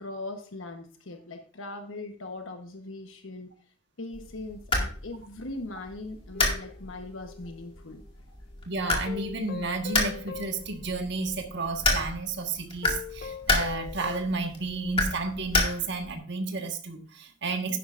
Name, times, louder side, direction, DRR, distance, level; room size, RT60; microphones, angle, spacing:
voice 1, 0.0-3.5 4.0-8.4, left 2 dB, 85° left, 5 dB, 1.1 m, -40 dB
sound 1, 4.1-16.2, left 2 dB, 30° left, 2.2 m, -31 dB
sound 2, 6.3-7.9 9.1-11.6 12.0-12.2 12.8-15.4 15.8-15.9, left 7 dB, 45° left, 0.6 m, -42 dB
voice 2, 8.6-17.8, right 3 dB, 60° right, 4 dB, 1.4 m, -32 dB
11.0 x 10.0 x 2.5 m, 0.42 s
head